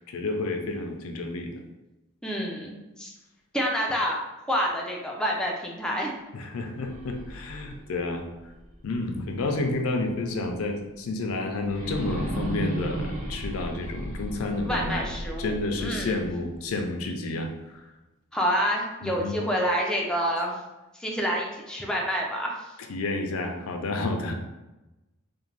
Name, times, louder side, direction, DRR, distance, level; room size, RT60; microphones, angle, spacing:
voice 1, 0.0-1.5 6.3-8.3 8.8-15.1 15.4-17.9 19.0-19.4 22.9-24.3, left 2 dB, 85° left, 4 dB, 0.4 m, -30 dB
voice 2, 2.2-3.1 3.5-4.2 4.5-6.1 14.7-16.1 18.3-20.5 20.9-22.7, equal, 5° left, -2 dB, 0.3 m, -28 dB
sound 1, 6.8-9.7 10.1-10.2 11.6-16.7, right 1 dB, 40° right, 1.0 m, -35 dB
2.5 x 2.1 x 3.1 m, 1.0 s
head